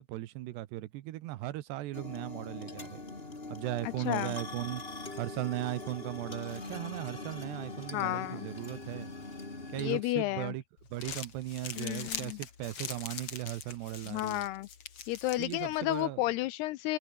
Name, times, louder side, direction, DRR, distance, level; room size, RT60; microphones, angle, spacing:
voice 1, 0.0-3.0 3.5-4.8 5.2-9.1 9.7-10.6 10.9-14.4 15.4-16.2, right 16 dB, 75° right, 3.0 m, -37 dB
sound 1, 1.9-10.0, left 2 dB, 15° left, 2.4 m, -42 dB
voice 2, 3.8-4.3 7.9-8.5 9.8-10.5 11.8-12.4 14.1-14.7 15.1-17.0, left 17 dB, 80° left, 2.5 m, -32 dB
Crumpling crinkling, 10.8-16.0, left 7 dB, 40° left, 2.6 m, -43 dB
omnidirectional pair, 5.1 m